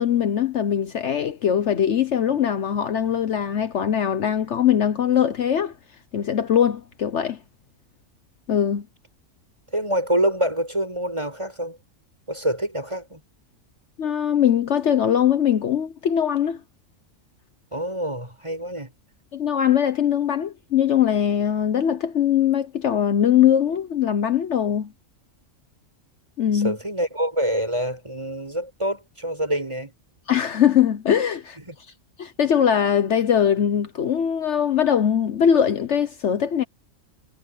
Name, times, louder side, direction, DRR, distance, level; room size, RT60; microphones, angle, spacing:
voice 1, 0.0-5.7 6.1-7.4 8.5-8.9 14.0-16.6 19.3-24.9 26.4-26.8 30.3-31.6 32.2-36.6, left 9 dB, 60° left, 1.1 m, -21 dB
voice 2, 9.7-11.8 12.3-13.2 17.7-18.9 26.5-29.9 31.7-31.8, right 1 dB, 20° right, 7.1 m, -26 dB
omnidirectional pair, 1.4 m